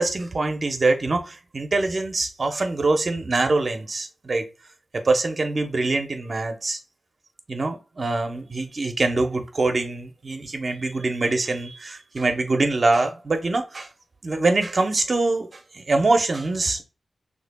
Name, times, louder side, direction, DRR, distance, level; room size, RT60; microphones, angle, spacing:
voice 1, 0.0-4.4 4.9-6.8 7.5-13.9 14.2-15.5 15.7-16.8, right 3 dB, 50° right, 0.8 m, -24 dB
6.4 x 2.8 x 2.3 m
wide cardioid pair, 80°, 0 cm